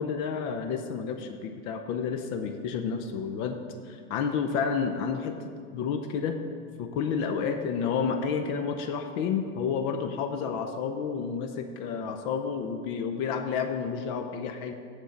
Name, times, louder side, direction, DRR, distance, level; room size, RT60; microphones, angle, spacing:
voice 1, 0.0-5.4 5.7-6.4 6.8-14.7, left 6 dB, 55° left, 6 dB, 0.7 m, -30 dB
9.3 x 4.5 x 6.5 m, 2.2 s
supercardioid pair, 115°, 36 cm